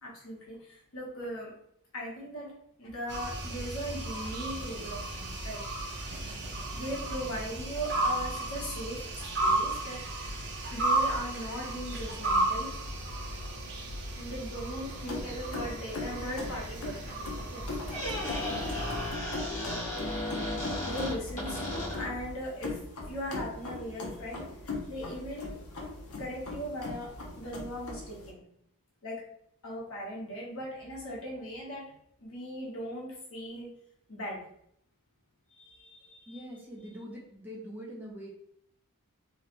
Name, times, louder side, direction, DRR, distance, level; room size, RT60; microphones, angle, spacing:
voice 1, 0.0-1.5 1.9-2.5 2.8-6.3 6.7-10.0 10.7-12.7 14.1-17.0 17.3-18.0 20.8-22.8 23.1-25.6 26.2-27.1 27.4-28.4 29.0-29.2 29.6-31.9 32.2-33.7 34.1-34.5 35.5-36.4, equal, 65° left, -4 dB, 1.2 m, -39 dB
sound 1, 3.1-19.1, right 2 dB, 50° right, 0.8 m, -34 dB
sound 2, 14.9-28.3, left 3 dB, 85° left, 0.8 m, -41 dB
Squeak, 17.7-22.3, left 1 dB, 35° left, 1.4 m, -35 dB
voice 2, 36.3-38.3, equal, 10° right, -3 dB, 0.6 m, -43 dB
3.1 x 3.1 x 3.0 m, 0.71 s
head